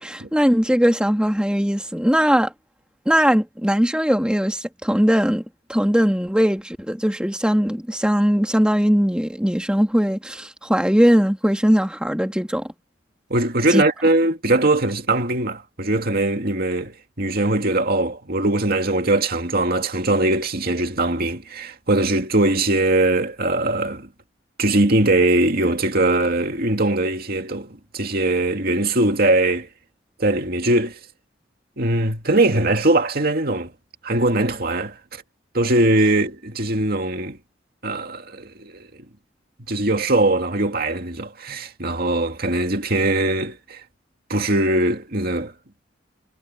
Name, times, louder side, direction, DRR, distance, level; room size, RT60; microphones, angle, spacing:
voice 1, 0.0-2.5 3.1-5.4 5.7-12.7 13.7-13.8, equal, 5° right, 2.1 m, -19 dB
voice 2, 13.3-24.1 24.6-29.7 30.2-31.0 31.8-33.7 34.0-35.2 35.5-37.4 37.8-38.9 39.7-43.8 44.3-45.5, right 2 dB, 50° right, 2.3 m, -21 dB
head